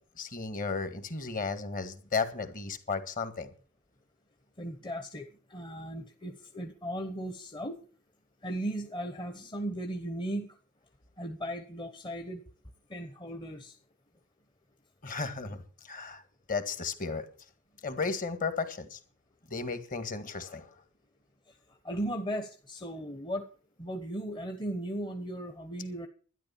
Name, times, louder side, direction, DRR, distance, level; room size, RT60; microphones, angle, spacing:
voice 1, 0.2-3.5 15.0-16.2 16.5-17.3 17.8-19.0 19.5-20.8, left 4 dB, 40° left, 10 dB, 1.8 m, -34 dB
voice 2, 4.6-7.8 8.4-10.6 11.2-12.4 12.9-13.8 21.8-23.5 23.8-26.1, right 1 dB, 20° left, 5 dB, 1.1 m, -37 dB
12.0 x 10.5 x 7.1 m, 0.41 s
head